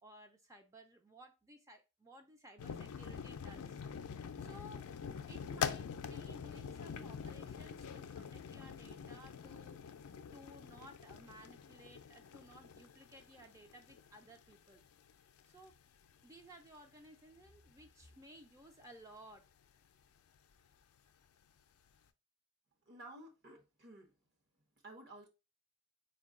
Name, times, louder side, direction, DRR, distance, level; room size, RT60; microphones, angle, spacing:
voice 1, 0.0-3.8 4.4-4.9 5.3-9.8 10.3-14.8 15.4-15.7 16.2-19.4, right 1 dB, 15° right, 0.4 m, -57 dB
sound 1, 2.6-15.1 15.4-15.6 16.1-16.2 16.4-16.7 17.5-17.7, left 7 dB, 80° left, 0.4 m, -45 dB
voice 2, 22.9-24.1 24.8-25.3, right 2 dB, 45° right, 0.8 m, -53 dB
4.4 x 2.2 x 3.5 m
head